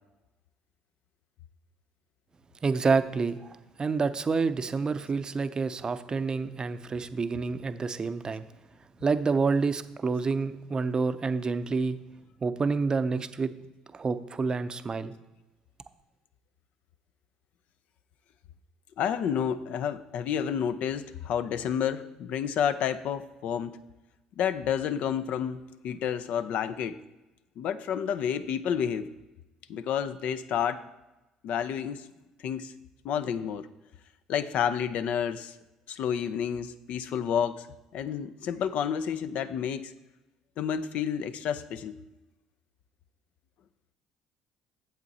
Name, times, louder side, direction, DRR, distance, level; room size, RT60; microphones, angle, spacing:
voice 1, 2.6-8.4 9.0-12.0 12.4-13.5 13.9-15.1, right 4 dB, 30° right, 12 dB, 0.6 m, -28 dB
voice 2, 19.0-23.8 24.4-27.0 27.6-29.1 29.7-30.8 31.4-32.1 32.4-32.7 33.0-33.7 34.3-35.6 35.9-37.7 37.9-39.9 40.6-42.0, left 8 dB, 65° left, 12 dB, 0.5 m, -30 dB
8.1 x 7.5 x 4.1 m, 1.0 s
hypercardioid pair, 65°, 2 cm